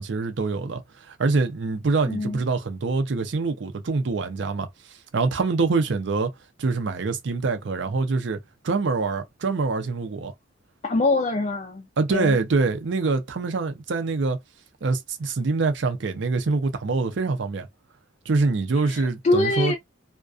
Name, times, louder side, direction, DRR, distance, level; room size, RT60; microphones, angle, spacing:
voice 1, 0.0-6.3 6.6-8.4 8.6-10.3 12.0-14.4 14.8-17.7 18.3-19.7, right 3 dB, 60° right, 0.5 m, -25 dB
voice 2, 2.1-2.4 10.8-12.4 18.8-19.7, left 2 dB, 35° left, 0.3 m, -24 dB
2.3 x 2.2 x 2.5 m
head